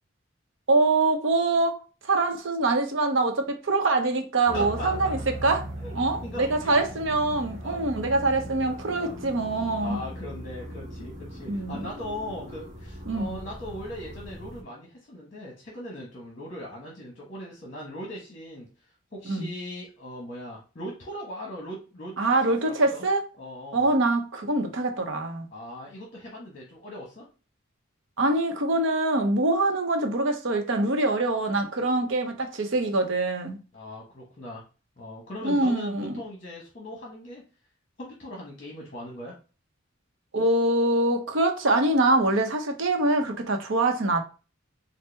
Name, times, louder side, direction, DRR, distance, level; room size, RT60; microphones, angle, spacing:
voice 1, 0.7-5.7 5.9-10.0 11.5-11.8 13.1-13.4 19.3-19.5 22.2-23.2 23.7-25.4 28.2-33.6 35.4-36.2 40.3-44.2, right 2 dB, 70° right, 0.7 m, -24 dB
voice 2, 4.5-5.1 5.8-5.9 6.2-7.0 7.6-7.9 8.9-9.1 9.8-18.7 19.1-22.4 22.7-23.0 23.4-23.9 25.5-27.3 33.7-34.6 35.0-37.5 38.0-39.3, left 1 dB, 35° left, 1.0 m, -39 dB
sound 1, 4.5-14.6, equal, 35° right, 1.1 m, -39 dB
4.4 x 2.1 x 3.3 m
head